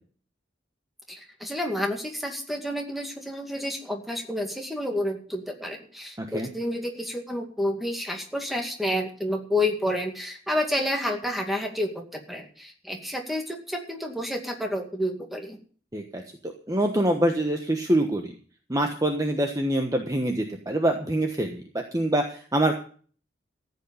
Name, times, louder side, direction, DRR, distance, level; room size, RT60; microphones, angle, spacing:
voice 1, 1.1-15.6, left 1 dB, ahead, 2 dB, 2.3 m, -30 dB
voice 2, 6.2-6.5 15.9-18.3 18.7-21.6 21.9-22.8, right 1 dB, 20° right, 4 dB, 1.2 m, -25 dB
14.5 x 8.4 x 7.0 m, 0.44 s
head